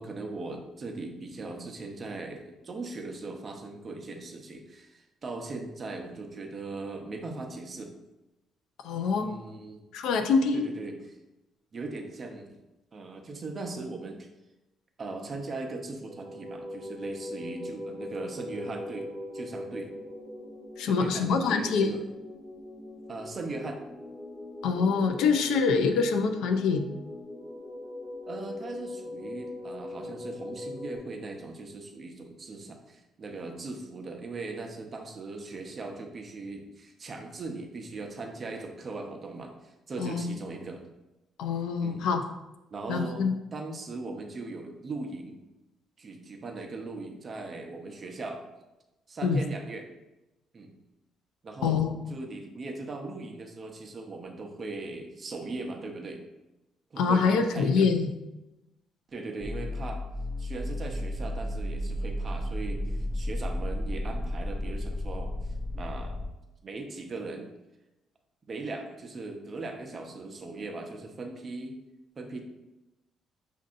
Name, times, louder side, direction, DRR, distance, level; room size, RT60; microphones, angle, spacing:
voice 1, 0.0-7.9 9.2-9.8 10.5-11.2 11.7-12.6 12.9-14.3 15.0-19.9 20.8-22.0 23.1-23.8 28.3-40.8 41.8-42.1 42.7-43.2 43.5-45.4 46.0-48.4 49.1-49.9 50.5-50.7 51.4-51.8 52.1-56.2 56.9-57.9 59.1-60.0 60.4-65.3 65.7-66.2 66.6-67.5 68.5-71.8 72.2-72.4, right 3 dB, 40° right, 3 dB, 0.6 m, -39 dB
voice 2, 8.8-9.3 9.9-10.6 20.8-21.9 24.6-26.8 40.0-40.2 41.4-42.2 42.9-43.3 49.2-49.4 51.6-52.1 57.0-58.1, left 5 dB, 85° left, 7 dB, 0.4 m, -25 dB
sound 1, 16.0-31.0, left 1 dB, 70° right, 1.0 m, -41 dB
sound 2, 59.4-66.3, left 1 dB, 10° left, 0.7 m, -33 dB
6.2 x 2.7 x 2.5 m, 0.99 s
cardioid pair, 110°, 0 cm